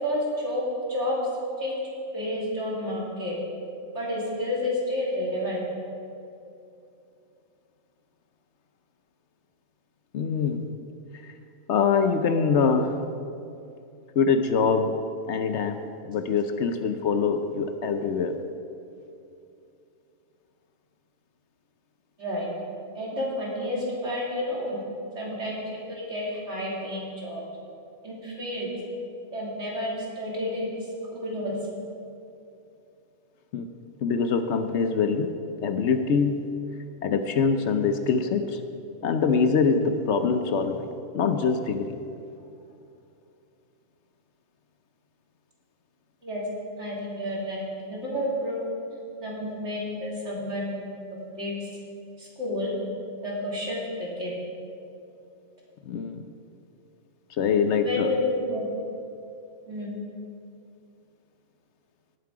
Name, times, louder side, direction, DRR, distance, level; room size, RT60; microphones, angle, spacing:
voice 1, 0.0-0.6 0.9-1.1 1.6-1.8 2.1-3.3 3.9-5.6 22.2-22.5 22.9-24.8 25.1-27.5 28.0-28.7 29.3-30.7 31.1-31.5 46.2-46.4 46.8-48.7 49.2-51.7 52.2-52.7 53.2-54.4 57.8-58.7 59.7-60.0, left 1 dB, 60° right, -5 dB, 3.3 m, -30 dB
voice 2, 10.1-10.6 11.2-11.3 11.7-13.0 14.2-15.0 15.3-18.4 28.5-28.6 33.5-33.7 34.0-35.3 35.6-36.4 37.0-38.6 39.0-40.9 41.1-42.0 55.9-56.2 57.4-58.2, left 5 dB, 65° left, 8 dB, 0.9 m, -24 dB
18.5 x 7.4 x 4.8 m, 2.6 s
omnidirectional pair, 1.3 m